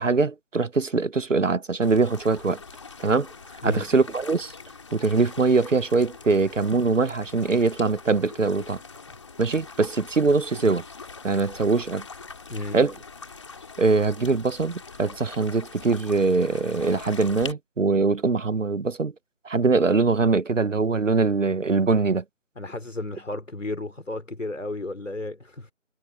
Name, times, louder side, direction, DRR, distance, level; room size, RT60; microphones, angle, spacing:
voice 1, 0.0-2.6 3.0-3.3 3.6-4.5 4.9-8.8 9.4-10.8 11.2-12.0 12.7-12.9 13.8-19.1 19.4-22.2, right 4 dB, 75° right, 1.2 m, -22 dB
sound 1, 1.8-17.5, left 4 dB, 25° left, 3.3 m, -43 dB
voice 2, 3.6-4.0 12.5-12.9 22.6-25.7, left 2 dB, 75° left, 4.0 m, -33 dB
figure-of-eight pair, 170°, 38 cm